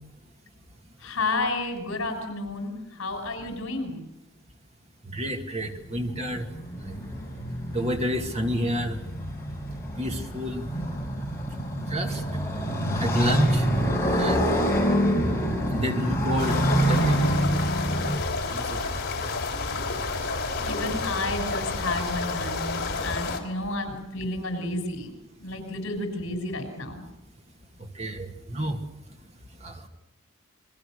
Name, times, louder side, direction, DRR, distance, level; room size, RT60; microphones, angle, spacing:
voice 1, 1.0-4.0 20.6-25.1 25.4-27.0, left 2 dB, 65° left, 4 dB, 6.4 m, -31 dB
voice 2, 5.0-6.5 6.8-6.9 7.7-9.0 10.0-10.7 11.9-12.2 12.9-13.7 14.1-14.5 15.7-16.6 16.9-17.2 18.5-18.9 27.8-28.8 29.6-29.9, equal, 30° right, 4 dB, 2.2 m, -29 dB
Motorcycle, 5.7-18.2, equal, 10° left, 4.8 m, -26 dB
sound 1, 16.4-23.4, left 3 dB, 45° left, 3.6 m, -30 dB
28.5 x 21.5 x 6.6 m, 0.90 s
head